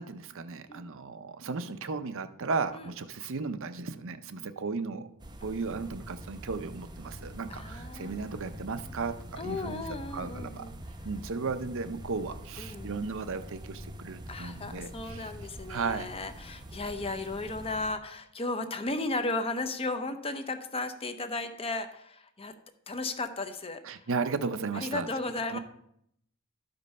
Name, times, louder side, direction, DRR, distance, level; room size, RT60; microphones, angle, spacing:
voice 1, 0.0-5.1 5.4-9.8 10.1-10.7 11.0-15.3 15.7-16.1 23.8-25.1 25.5-25.6, right 4 dB, 60° right, 10 dB, 0.7 m, -35 dB
sound 1, 5.2-17.9, equal, 20° right, 0.8 m, -45 dB
voice 2, 7.5-8.3 9.4-10.7 12.6-12.9 14.3-22.5 22.9-23.8 24.7-25.6, left 2 dB, 25° left, 8 dB, 0.8 m, -35 dB
12.5 x 5.3 x 5.4 m, 0.74 s
head